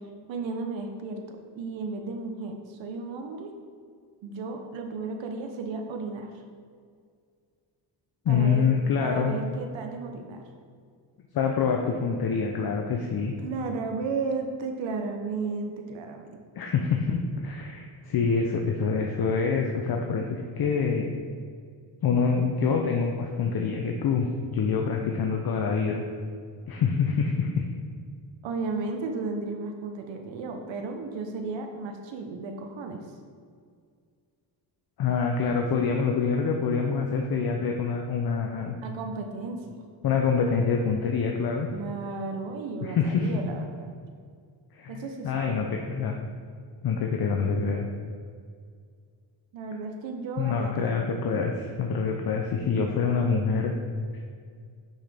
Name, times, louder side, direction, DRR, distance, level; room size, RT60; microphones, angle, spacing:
voice 1, 0.3-3.5 4.2-6.3 8.3-8.7 9.0-10.4 13.4-16.4 28.4-33.0 38.8-39.8 41.7-43.7 44.9-45.6 49.5-51.0, right 4 dB, 80° right, 4 dB, 0.8 m, -34 dB
voice 2, 8.3-9.3 11.3-13.3 16.6-21.1 22.0-26.0 26.7-27.7 35.0-38.8 40.0-41.7 42.8-43.3 44.7-46.1 46.8-47.9 50.4-53.7 54.1-54.2, left 5 dB, 55° left, 2 dB, 0.7 m, -26 dB
6.4 x 5.7 x 3.4 m, 2.1 s
cardioid pair, 90°, 45 cm